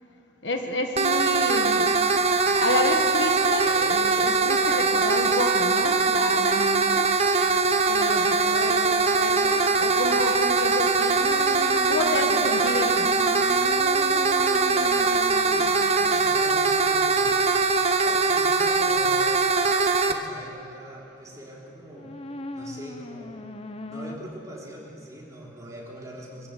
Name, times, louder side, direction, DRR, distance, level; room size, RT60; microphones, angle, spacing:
voice 1, 0.4-1.9 2.5-7.2 7.9-11.3 11.9-13.2, left 2 dB, 60° left, 5 dB, 1.5 m, -30 dB
sound 1, 1.0-20.1, right 4 dB, 35° right, 0.8 m, -22 dB
sound 2, 11.2-16.6 21.9-24.2, left 1 dB, 30° left, 0.8 m, -39 dB
voice 2, 13.8-17.4 18.0-19.4 20.0-22.2 22.5-23.5 23.9-26.5, equal, 15° right, -4 dB, 3.8 m, -43 dB
22.5 x 15.0 x 8.2 m, 2.7 s
head